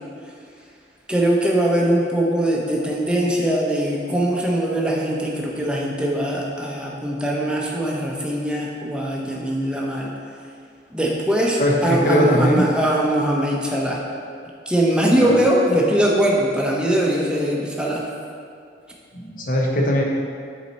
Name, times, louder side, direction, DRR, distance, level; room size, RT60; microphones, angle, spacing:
voice 1, 1.1-10.1 10.9-14.0 14.7-18.0, right 1 dB, 5° right, -3 dB, 0.7 m, -21 dB
voice 2, 11.6-12.6 15.2-15.3 19.1-20.0, equal, 45° left, -1 dB, 0.8 m, -20 dB
7.4 x 4.2 x 4.1 m, 2.3 s
head